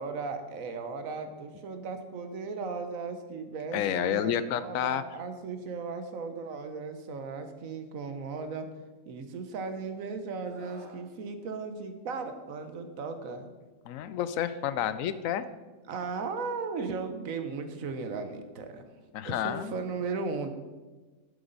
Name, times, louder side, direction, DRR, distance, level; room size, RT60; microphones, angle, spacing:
voice 1, 0.0-8.7 9.1-13.5 15.9-18.8 19.2-20.5, right 4 dB, 80° right, 8 dB, 1.3 m, -36 dB
voice 2, 3.7-5.0 13.9-15.5 19.1-19.8, left 10 dB, 80° left, 13 dB, 1.0 m, -30 dB
Screaming, 10.4-11.0 12.5-12.7, right 3 dB, 45° right, 2.3 m, -50 dB
11.0 x 8.0 x 4.0 m, 1.3 s
omnidirectional pair, 1.4 m